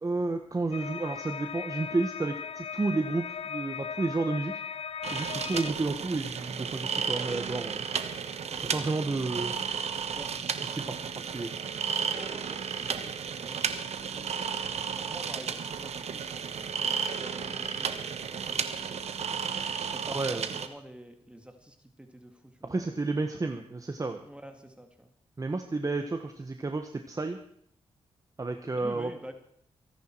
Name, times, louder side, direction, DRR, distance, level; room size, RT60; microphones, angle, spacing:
voice 1, 0.0-4.6 5.1-7.8 8.7-9.5 10.6-11.5 20.1-20.5 22.6-24.2 25.4-27.4 28.4-29.3, right 3 dB, 30° right, 6 dB, 1.4 m, -31 dB
sound 1, 0.7-5.7, left 7 dB, 65° left, 0.6 m, -38 dB
sound 2, 5.0-20.7, right 7 dB, 75° right, 1.3 m, -33 dB
voice 2, 11.5-19.4 19.9-22.9 24.2-25.1 28.7-29.3, right 1 dB, 10° right, 6 dB, 2.1 m, -49 dB
24.0 x 10.5 x 4.6 m, 0.67 s
cardioid pair, 70°, 11 cm